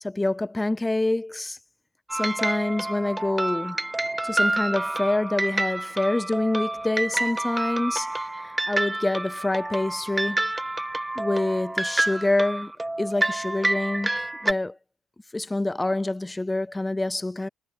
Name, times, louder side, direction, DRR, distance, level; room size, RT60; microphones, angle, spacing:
voice 1, 0.0-1.6 2.1-3.9 4.2-8.1 8.4-10.4 11.2-12.7 13.0-14.8 15.3-17.5, left 2 dB, 15° left, 0.4 m, -26 dB
sound 1, 2.1-14.5, right 2 dB, 15° right, 1.1 m, -28 dB
hypercardioid pair, 55°, 0 cm